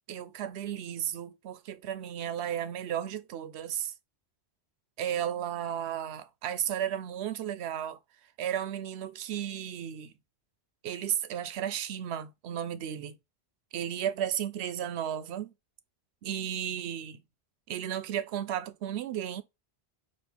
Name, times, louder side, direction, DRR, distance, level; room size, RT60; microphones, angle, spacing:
voice 1, 0.1-3.9 5.0-8.0 8.4-10.1 10.8-13.2 13.7-15.5 16.2-17.2 17.7-19.4, right 10 dB, 80° right, 0.8 m, -34 dB
4.3 x 2.7 x 3.4 m
omnidirectional pair, 1.1 m